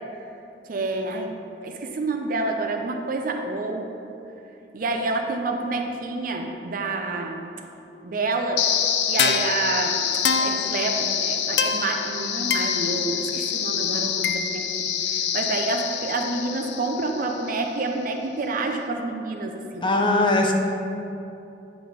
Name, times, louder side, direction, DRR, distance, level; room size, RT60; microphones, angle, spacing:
voice 1, 0.7-1.3 1.6-3.9 4.7-7.5 8.0-8.6 9.1-10.0 10.4-19.9, right 3 dB, 50° right, 3 dB, 0.6 m, -28 dB
sound 1, 8.6-17.6, left 7 dB, 80° left, 0.5 m, -25 dB
voice 2, 19.8-20.5, left 2 dB, 30° left, 2 dB, 0.6 m, -20 dB
9.1 x 4.8 x 4.0 m, 2.8 s
head